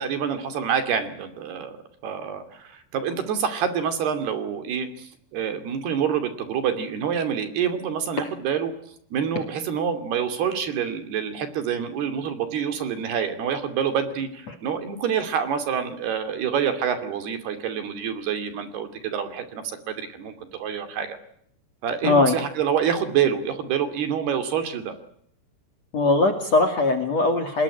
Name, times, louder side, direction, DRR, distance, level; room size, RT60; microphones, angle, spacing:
voice 1, 0.0-1.8 2.0-8.7 9.1-21.2 21.8-24.9, right 8 dB, 60° right, 9 dB, 4.3 m, -27 dB
voice 2, 22.0-22.4 25.9-27.6, left 2 dB, 40° left, 6 dB, 2.9 m, -20 dB
27.5 x 20.5 x 9.9 m, 0.68 s
omnidirectional pair, 5.6 m